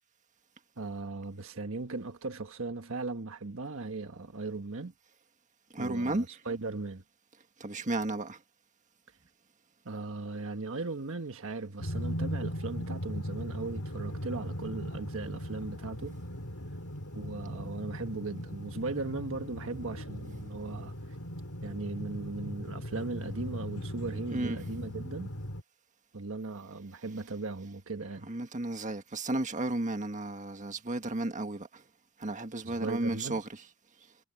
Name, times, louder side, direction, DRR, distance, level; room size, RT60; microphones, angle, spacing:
voice 1, 0.8-4.9 5.8-7.0 9.8-16.2 17.1-20.9 21.6-25.3 26.1-28.3 32.6-33.4, right 3 dB, 65° right, 1.4 m, -38 dB
voice 2, 5.7-6.2 7.6-8.4 24.3-24.6 28.3-31.8 32.2-33.4, right 2 dB, 35° right, 1.7 m, -33 dB
sound 1, 11.8-25.6, equal, 85° left, 3.8 m, -38 dB
head